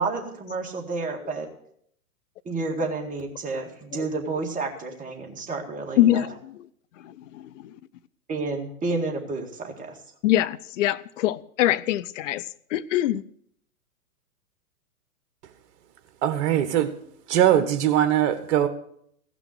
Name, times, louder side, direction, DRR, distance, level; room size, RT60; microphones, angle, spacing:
voice 1, 0.0-1.5 2.5-6.3 8.3-10.0, right 3 dB, 15° right, 2.0 m, -30 dB
voice 2, 6.0-6.5 7.0-7.8 10.2-13.2, left 13 dB, 55° left, 0.6 m, -24 dB
voice 3, 16.2-16.9 17.3-18.7, right 11 dB, 45° right, 1.6 m, -21 dB
16.5 x 6.1 x 8.1 m
hypercardioid pair, 125°, 47 cm